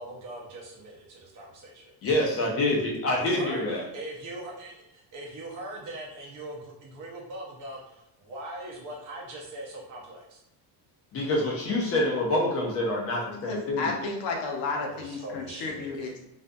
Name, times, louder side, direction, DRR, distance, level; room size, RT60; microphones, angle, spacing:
voice 1, 0.0-1.8 3.2-3.6 3.9-7.8 8.2-10.4 14.7-15.9, right 1 dB, 45° right, -2 dB, 0.7 m, -41 dB
voice 2, 2.0-3.8 11.1-14.0, left 1 dB, 35° left, -1 dB, 0.5 m, -26 dB
voice 3, 13.5-16.2, left 4 dB, 75° left, 1 dB, 0.7 m, -32 dB
2.5 x 2.5 x 2.2 m, 0.91 s
cardioid pair, 175°, 43 cm